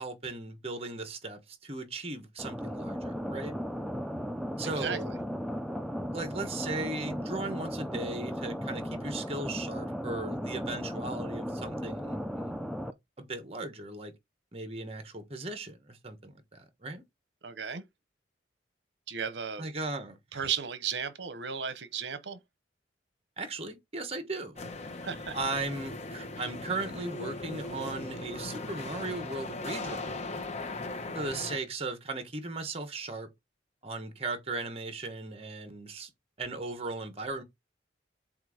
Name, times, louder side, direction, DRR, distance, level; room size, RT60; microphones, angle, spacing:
voice 1, 0.0-3.5 4.6-5.1 6.1-12.6 13.2-14.1 14.5-17.0 19.6-20.5 23.4-24.6 25.3-30.2 31.1-33.3 33.8-36.1 36.4-37.4, right 3 dB, 35° right, 1.2 m, -37 dB
sound 1, 2.4-12.9, equal, ahead, 0.4 m, -36 dB
voice 2, 4.7-5.2 17.4-17.8 19.1-19.6 20.3-22.4 25.0-25.4, right 7 dB, 70° right, 0.9 m, -35 dB
sound 2, 24.6-31.6, left 2 dB, 35° left, 0.9 m, -39 dB
7.7 x 2.6 x 4.9 m
head